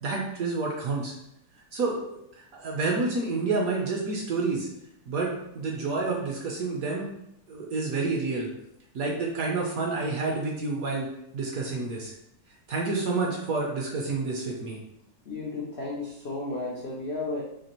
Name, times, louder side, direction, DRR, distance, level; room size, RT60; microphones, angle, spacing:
voice 1, 0.0-1.1 1.7-2.0 2.4-4.7 5.1-7.1 7.5-8.5 8.9-11.1 11.3-12.1 12.7-14.8, right 3 dB, 65° right, -1 dB, 0.9 m, -29 dB
voice 2, 15.2-17.4, left 2 dB, 80° left, -4 dB, 0.5 m, -33 dB
4.1 x 2.9 x 2.9 m, 0.79 s
omnidirectional pair, 2.0 m